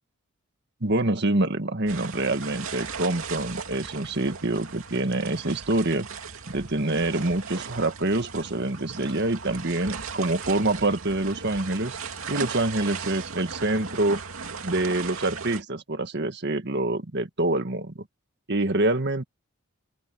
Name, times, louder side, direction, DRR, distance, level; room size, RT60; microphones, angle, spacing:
voice 1, 0.8-6.1 6.5-12.0 12.3-14.2 14.6-17.9 18.5-19.2, right 2 dB, 55° right, 1.8 m, -26 dB
sound 1, 1.9-15.6, right 5 dB, 75° right, 2.7 m, -37 dB
open air
head